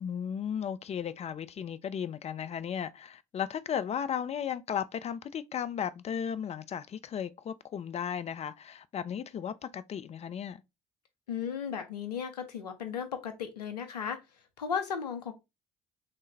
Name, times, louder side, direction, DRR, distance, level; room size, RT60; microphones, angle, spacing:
voice 1, 0.0-10.6, left 8 dB, 35° left, 0.4 m, -35 dB
voice 2, 11.3-14.2 14.6-15.3, left 7 dB, 90° left, 0.5 m, -35 dB
3.2 x 2.1 x 3.3 m
hypercardioid pair, 50°, 20 cm